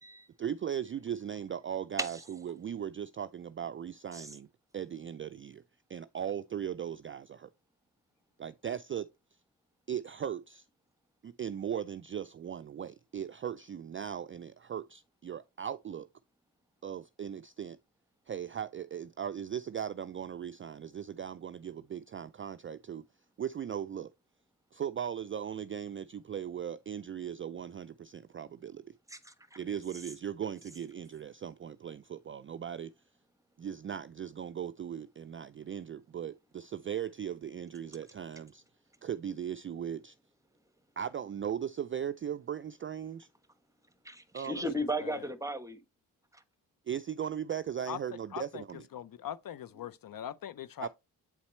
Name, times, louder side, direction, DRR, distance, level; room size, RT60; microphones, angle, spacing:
voice 1, 0.4-4.5 4.7-5.6 5.9-7.5 8.4-9.1 9.9-10.7 11.2-16.1 16.8-17.8 18.3-23.1 23.4-24.1 24.7-28.8 29.6-32.9 33.6-38.6 39.0-40.2 41.0-43.3 44.3-44.7 46.9-48.9 50.8-50.9, right 9 dB, 30° right, 0.4 m, -38 dB
voice 2, 29.1-29.6 44.0-45.8, equal, 5° right, 1.1 m, -35 dB
voice 3, 44.8-45.2 47.9-48.0 48.3-48.6 48.9-50.9, left 10 dB, 55° left, 0.6 m, -41 dB
8.8 x 4.1 x 3.1 m
supercardioid pair, 60°, 43 cm